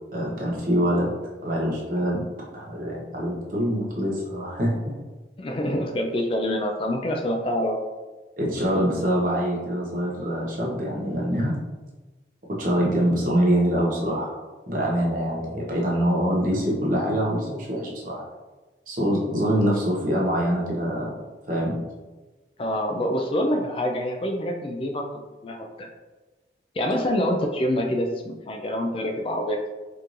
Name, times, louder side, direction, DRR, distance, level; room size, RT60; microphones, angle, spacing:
voice 1, 0.1-1.1 1.4-2.2 2.5-5.0 8.4-11.6 12.5-18.2 18.9-21.2 21.5-21.7, equal, 45° right, -4 dB, 1.0 m, -24 dB
voice 2, 5.4-7.8 22.6-25.9 26.7-29.7, equal, 30° left, 2 dB, 0.3 m, -26 dB
4.5 x 3.1 x 2.5 m, 1.2 s
head